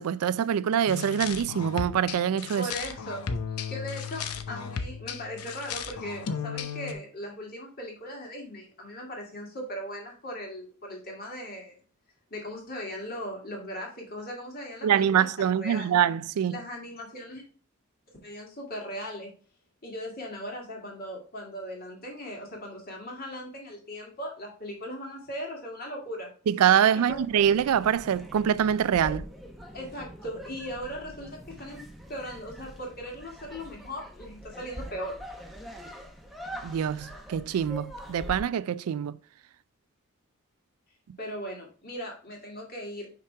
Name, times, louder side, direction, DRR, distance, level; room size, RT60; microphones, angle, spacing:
voice 1, 0.0-2.7 14.8-16.6 26.5-29.2 36.6-39.2, right 9 dB, 80° right, 0.3 m, -24 dB
sound 1, 0.9-6.9, left 6 dB, 85° left, 0.7 m, -35 dB
voice 2, 2.6-3.2 3.7-11.7 12.3-16.0 16.5-17.4 18.2-19.3 19.8-26.3 26.9-27.2 29.0-29.2 29.7-31.8 32.1-35.1 41.2-43.1, equal, 45° left, 2.2 m, -38 dB
sound 2, 27.1-38.4, equal, ahead, 0.8 m, -43 dB
5.8 x 5.0 x 3.3 m
head